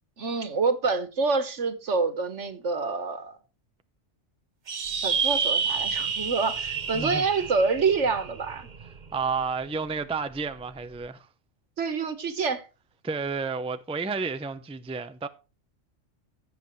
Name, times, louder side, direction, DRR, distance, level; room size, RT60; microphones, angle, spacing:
voice 1, 0.2-3.4 5.0-8.7 11.8-12.6, right 4 dB, 80° right, 1.7 m, -27 dB
sound 1, 4.7-9.4, right 5 dB, 45° right, 0.9 m, -29 dB
voice 2, 6.9-7.2 9.1-11.3 13.0-15.3, right 4 dB, 5° right, 0.5 m, -31 dB
16.0 x 7.8 x 3.2 m
omnidirectional pair, 1.2 m